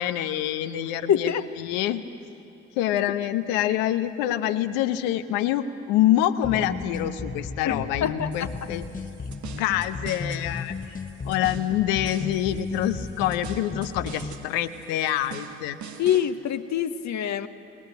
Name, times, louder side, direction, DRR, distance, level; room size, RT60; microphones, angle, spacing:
voice 1, 0.0-2.0 2.7-8.9 9.6-11.0 11.2-15.8, left 12 dB, 75° left, 10 dB, 1.0 m, -26 dB
voice 2, 1.1-1.5 7.6-8.3 16.0-17.5, left 9 dB, 55° left, 9 dB, 1.0 m, -25 dB
sound 1, 6.4-14.5, left 4 dB, 25° left, 1.1 m, -34 dB
sound 2, 8.3-16.3, right 8 dB, 55° right, 1.4 m, -45 dB
25.0 x 20.5 x 8.2 m, 2.9 s
hypercardioid pair, 45°, 34 cm